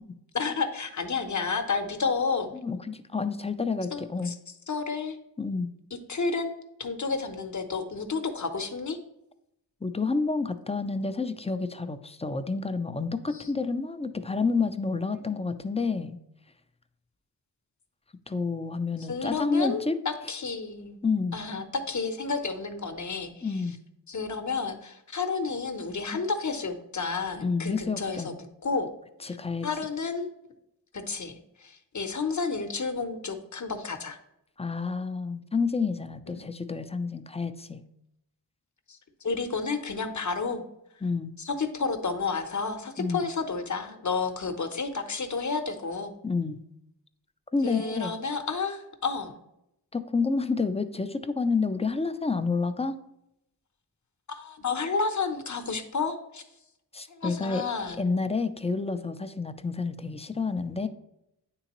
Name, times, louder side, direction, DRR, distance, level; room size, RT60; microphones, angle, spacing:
voice 1, 0.3-2.5 3.9-4.4 4.7-5.2 6.1-6.5 6.8-9.0 13.3-13.5 15.2-15.3 19.1-21.0 21.3-23.6 24.1-28.3 28.6-28.9 29.3-29.4 29.6-30.3 30.9-34.2 36.3-36.4 38.9-40.6 41.4-46.1 47.6-49.4 54.3-56.4 57.1-58.0, left 4 dB, 45° left, 7 dB, 0.9 m, -31 dB
voice 2, 2.6-4.4 5.4-5.7 9.8-16.2 18.3-20.0 21.0-21.4 23.4-23.8 26.1-26.2 27.4-28.3 29.2-29.7 34.6-37.8 41.0-41.3 43.0-43.2 46.2-46.6 47.5-48.2 49.9-53.0 56.9-57.7 58.0-60.9, left 4 dB, 15° left, 10 dB, 0.4 m, -29 dB
9.0 x 3.8 x 3.0 m, 0.82 s
cardioid pair, 55°, 42 cm